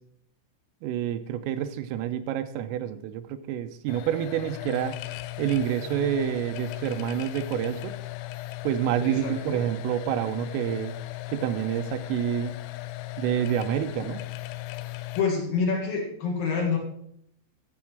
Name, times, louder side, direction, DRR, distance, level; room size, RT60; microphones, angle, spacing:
voice 1, 0.8-5.0 5.4-8.0 8.6-10.9 11.3-12.5 13.2-14.2, right 10 dB, 85° right, 9 dB, 3.3 m, -28 dB
sound 1, 3.9-15.2, left 18 dB, 85° left, 3.1 m, -37 dB
voice 2, 9.0-9.6 15.1-16.8, left 5 dB, 55° left, 0 dB, 2.9 m, -27 dB
13.5 x 7.2 x 6.0 m, 0.70 s
omnidirectional pair, 6.0 m